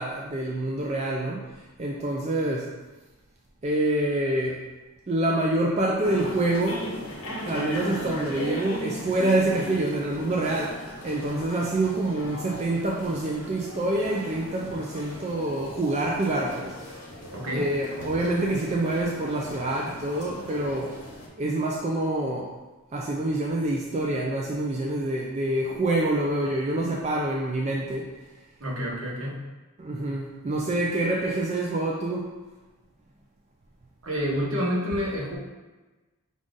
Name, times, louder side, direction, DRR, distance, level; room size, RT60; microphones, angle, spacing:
voice 1, 0.0-1.5 1.8-2.7 3.6-4.6 5.1-6.9 7.5-16.9 17.5-21.0 21.4-22.5 22.9-28.1 29.8-32.3, right 1 dB, 30° right, -2 dB, 0.3 m, -26 dB
sound 1, 6.0-21.3, left 1 dB, 85° left, 1.1 m, -38 dB
voice 2, 17.3-17.7 28.6-29.5 34.0-35.4, equal, 70° right, -3 dB, 1.0 m, -28 dB
5.3 x 2.5 x 3.7 m, 1.2 s
head